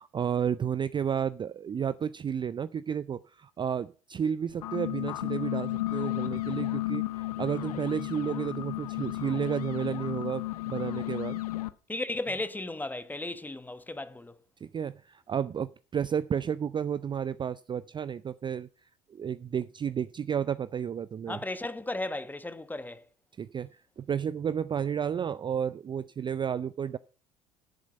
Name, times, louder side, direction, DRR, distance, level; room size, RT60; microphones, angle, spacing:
voice 1, 0.0-11.4 14.7-18.7 19.1-21.4 23.4-27.0, right 8 dB, 25° right, 0.4 m, -32 dB
sound 1, 4.5-11.7, left 17 dB, 80° left, 0.7 m, -33 dB
voice 2, 11.9-14.4 21.3-23.1, left 2 dB, 10° left, 1.1 m, -35 dB
11.5 x 7.3 x 5.4 m
hypercardioid pair, 65°, 19 cm